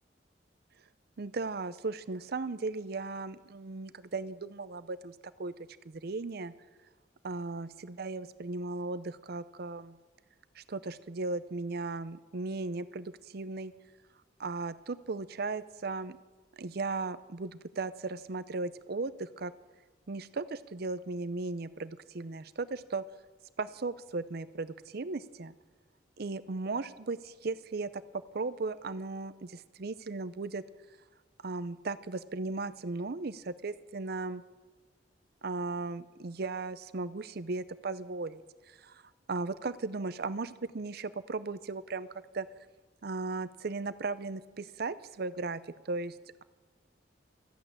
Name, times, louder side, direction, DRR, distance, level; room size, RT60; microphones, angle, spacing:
voice 1, 1.2-5.5 5.8-6.5 7.2-10.0 10.5-13.7 14.4-16.2 16.6-19.5 20.1-23.0 23.6-25.5 26.2-28.0 28.3-30.6 31.4-34.4 35.4-38.4 38.7-39.0 39.3-42.1 42.3-42.5 43.0-46.4, right 3 dB, 55° right, 15 dB, 0.6 m, -36 dB
13.5 x 8.4 x 8.8 m, 1.3 s
head